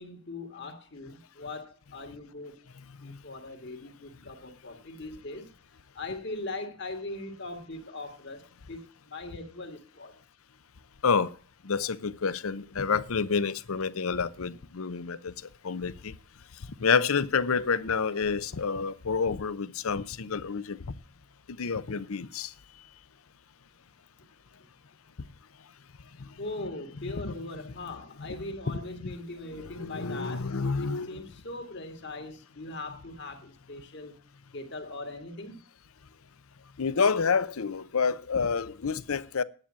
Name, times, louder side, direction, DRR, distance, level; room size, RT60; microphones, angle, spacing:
voice 1, 0.0-2.5 3.0-5.5 6.0-8.8 9.1-10.1 26.4-30.5 30.8-34.1 34.5-35.5, left 2 dB, 50° left, 2.1 m, -40 dB
voice 2, 11.6-15.3 15.6-16.1 16.8-20.9 21.6-22.5 27.0-27.3 27.9-28.0 28.2-29.1 29.5-31.2 36.8-39.4, left 5 dB, 75° left, 0.7 m, -29 dB
9.9 x 8.6 x 7.5 m
head